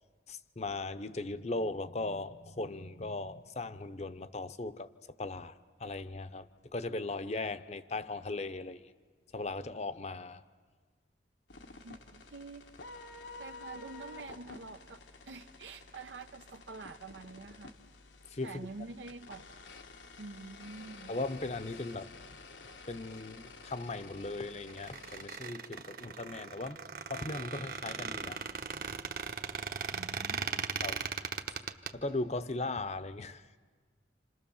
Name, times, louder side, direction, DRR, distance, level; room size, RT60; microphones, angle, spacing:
voice 1, 0.3-4.9 5.2-5.5 5.8-6.5 6.7-8.9 9.3-10.4 18.3-18.7 21.1-22.1 22.9-26.8 27.0-28.4 28.8-28.9 30.8-31.1 31.9-33.5, left 2 dB, 40° left, 0.8 m, -38 dB
sound 1, 11.5-25.3, left 3 dB, 90° left, 1.7 m, -51 dB
voice 2, 11.8-12.6 13.4-17.7 18.4-19.5 20.2-21.2 29.9-30.7, right 3 dB, 90° right, 0.8 m, -47 dB
Squeak, 24.7-31.9, right 5 dB, 55° right, 1.1 m, -38 dB
29.0 x 27.0 x 7.2 m
head